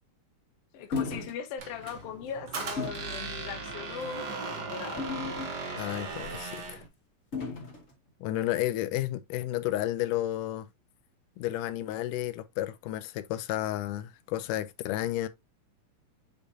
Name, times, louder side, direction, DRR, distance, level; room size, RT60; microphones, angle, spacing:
voice 1, 0.7-5.0 7.3-7.5, left 7 dB, 60° left, 1.8 m, -39 dB
sound 1, 0.9-1.4 1.8-2.0 2.8-3.1 3.9-4.2 5.0-5.9 7.3-7.8, left 4 dB, 25° left, 2.2 m, -35 dB
Squeak, 1.6-6.9, right 4 dB, 45° right, 1.4 m, -38 dB
voice 2, 5.8-6.8 8.2-10.7 11.4-15.3, left 14 dB, 90° left, 2.2 m, -32 dB
8.0 x 5.2 x 2.7 m
omnidirectional pair, 3.7 m